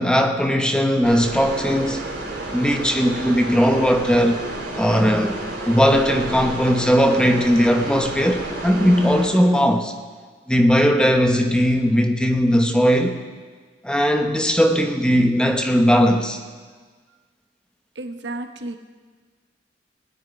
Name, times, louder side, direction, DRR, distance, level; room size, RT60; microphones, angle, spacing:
voice 1, 0.0-2.0 2.5-4.4 4.8-9.9 10.5-13.2 13.8-16.4, equal, 5° left, 5 dB, 0.9 m, -18 dB
sound 1, 1.0-9.3, right 1 dB, 55° right, 3.7 m, -31 dB
voice 2, 17.9-18.8, right 2 dB, 75° right, 5 dB, 1.1 m, -32 dB
18.0 x 6.6 x 9.9 m, 1.5 s
head